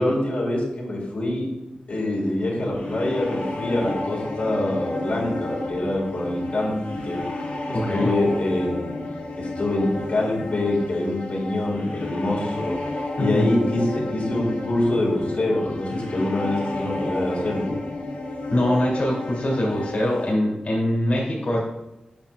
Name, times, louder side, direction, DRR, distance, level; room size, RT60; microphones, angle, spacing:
voice 1, 0.0-1.5 1.9-7.2 7.7-9.0 9.4-12.8 13.2-17.7, left 1 dB, 70° left, -6 dB, 2.0 m, -25 dB
sound 1, 2.7-20.3, left 2 dB, 85° left, 1.0 m, -32 dB
voice 2, 7.7-8.1 13.2-13.5 18.5-21.6, left 1 dB, 55° left, -3 dB, 1.9 m, -23 dB
7.2 x 5.5 x 2.4 m, 0.96 s
cardioid pair, 65°, 3 cm